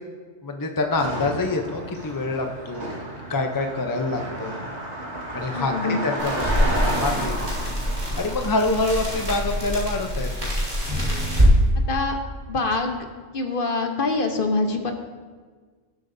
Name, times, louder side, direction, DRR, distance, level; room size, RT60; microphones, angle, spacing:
voice 1, 0.4-2.9 3.3-4.6 5.3-7.3 8.2-10.5, left 3 dB, 25° left, 4 dB, 0.5 m, -26 dB
Car passing by, 0.9-10.5, right 1 dB, 65° right, 2.0 m, -32 dB
voice 2, 5.5-6.0 11.9-12.2 12.5-13.1 13.3-14.9, left 3 dB, 45° left, 5 dB, 1.0 m, -25 dB
sound 1, 6.2-11.5, equal, 35° right, 3.2 m, -25 dB
18.0 x 7.9 x 2.7 m, 1.5 s
omnidirectional pair, 1.3 m